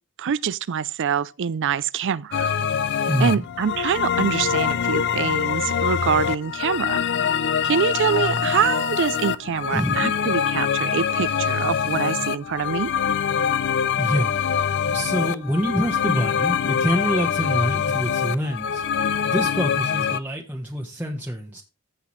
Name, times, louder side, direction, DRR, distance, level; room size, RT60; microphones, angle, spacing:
voice 1, 0.2-2.5 3.0-7.0 7.6-12.9, right 7 dB, 60° right, 0.4 m, -25 dB
sound 1, 2.3-20.2, left 7 dB, 55° left, 0.5 m, -24 dB
voice 2, 3.1-3.4 9.7-10.1 14.0-14.3 14.9-19.0 19.3-21.6, equal, 10° right, 1.0 m, -26 dB
15.5 x 5.8 x 3.1 m
head